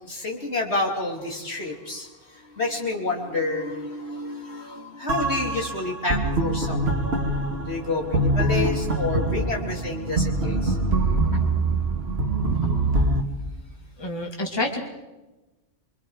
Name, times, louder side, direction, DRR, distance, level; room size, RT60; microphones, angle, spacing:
voice 1, 0.0-7.0 7.6-10.8 11.3-11.4 12.5-12.6 12.9-13.0, left 2 dB, 60° left, 0 dB, 3.3 m, -29 dB
sound 1, 5.1-13.2, right 2 dB, 55° right, 2.1 m, -24 dB
voice 2, 14.0-14.9, left 2 dB, 20° left, 1 dB, 2.5 m, -28 dB
25.5 x 24.5 x 4.8 m, 1.1 s
omnidirectional pair, 1.2 m